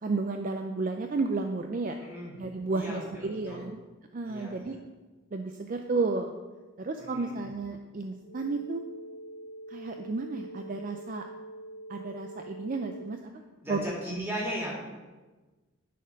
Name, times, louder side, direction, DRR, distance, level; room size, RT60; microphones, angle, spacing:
voice 1, 0.0-2.0 2.3-3.8 4.1-4.8 5.3-6.3 6.8-8.8 9.7-11.3 11.9-13.3 13.7-14.3, right 3 dB, 40° right, 5 dB, 0.4 m, -32 dB
voice 2, 2.0-2.3 2.7-3.6 4.2-4.7 7.0-7.4 13.6-14.8, equal, 10° right, -6 dB, 2.5 m, -37 dB
sound 1, 8.2-13.2, right 1 dB, 55° left, 0.6 m, -45 dB
10.0 x 4.4 x 5.1 m, 1.3 s
head